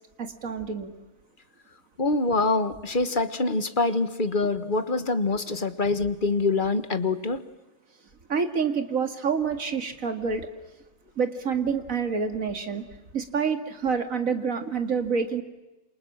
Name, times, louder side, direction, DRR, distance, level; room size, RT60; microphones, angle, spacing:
voice 1, 0.2-0.9 8.3-10.5 11.2-12.8 13.1-15.4, right 6 dB, 45° right, 7 dB, 2.4 m, -27 dB
voice 2, 2.0-7.4, left 3 dB, 30° left, 10 dB, 1.3 m, -25 dB
28.0 x 28.0 x 7.5 m, 1.0 s
omnidirectional pair, 2.0 m